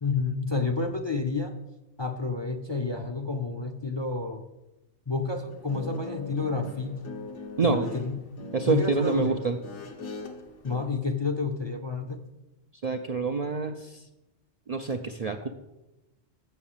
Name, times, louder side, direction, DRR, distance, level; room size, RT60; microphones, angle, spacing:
voice 1, 0.0-1.5 2.0-4.5 5.1-7.1 7.6-8.3 8.7-9.4 10.6-12.2, left 4 dB, 35° left, 5 dB, 0.5 m, -30 dB
Guitar, 5.5-10.8, left 3 dB, 85° left, 1.4 m, -40 dB
voice 2, 7.6-7.9 8.5-9.6 12.8-14.1 14.7-15.5, right 4 dB, 50° right, 5 dB, 0.4 m, -27 dB
6.9 x 6.7 x 7.3 m, 0.98 s
omnidirectional pair, 1.2 m